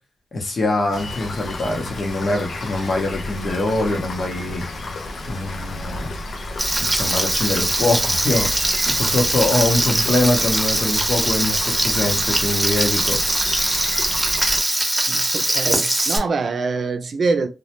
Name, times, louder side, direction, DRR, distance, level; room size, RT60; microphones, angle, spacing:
voice 1, 0.3-4.6 5.3-6.1 6.8-13.2, left 2 dB, 65° left, 0.9 m, -23 dB
Rain, 0.9-14.6, left 2 dB, 80° left, 0.5 m, -32 dB
Frying (food), 6.6-16.2, right 1 dB, 25° right, 0.8 m, -21 dB
voice 2, 15.1-17.5, right 4 dB, 70° right, 0.4 m, -24 dB
2.2 x 2.0 x 2.9 m
supercardioid pair, 45°, 0 cm